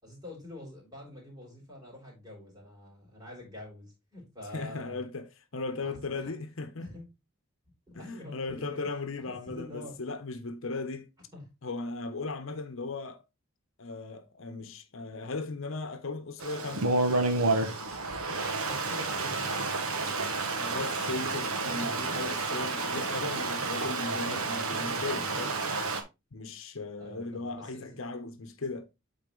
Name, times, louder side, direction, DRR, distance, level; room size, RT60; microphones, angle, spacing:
voice 1, 0.0-5.0 5.8-6.3 6.8-7.0 7.9-10.0 11.3-11.5 18.7-20.5 21.6-22.2 27.0-28.0, left 1 dB, 20° right, 3.5 m, -46 dB
voice 2, 4.5-6.9 7.9-11.1 11.6-13.2 13.8-17.0 20.5-25.6 26.3-28.8, left 3 dB, 70° left, 0.9 m, -37 dB
Stream, 16.4-26.0, right 3 dB, 85° right, 1.4 m, -30 dB
8.7 x 4.1 x 3.8 m
head